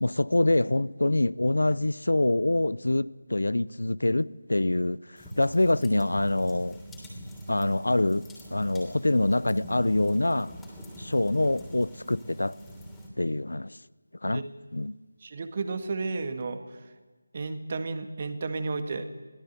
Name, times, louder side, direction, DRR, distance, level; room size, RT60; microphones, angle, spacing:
voice 1, 0.0-5.0 5.4-6.8 7.5-8.2 8.5-10.5 11.0-12.6 13.2-13.8 14.2-14.4 14.7-14.9, left 2 dB, 70° left, 0.6 m, -25 dB
sound 1, 5.2-13.1, equal, 5° left, 3.1 m, -44 dB
voice 2, 15.2-16.8 17.3-19.1, right 3 dB, 35° right, 1.8 m, -32 dB
22.0 x 16.0 x 8.1 m
figure-of-eight pair, 160°, 0 cm